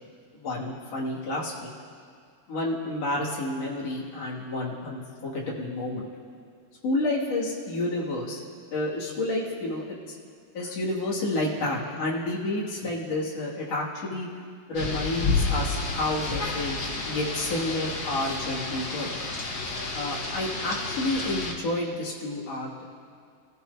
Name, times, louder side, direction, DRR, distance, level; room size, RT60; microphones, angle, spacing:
voice 1, 0.3-1.7 2.5-6.0 6.8-8.4 8.7-10.0 10.5-14.3 14.7-16.8 17.1-19.1 19.9-22.8, left 1 dB, 45° left, -5 dB, 3.3 m, -30 dB
Rain, 14.7-21.5, left 3 dB, 70° left, 0.9 m, -30 dB
29.5 x 15.0 x 2.8 m, 2.3 s
omnidirectional pair, 4.2 m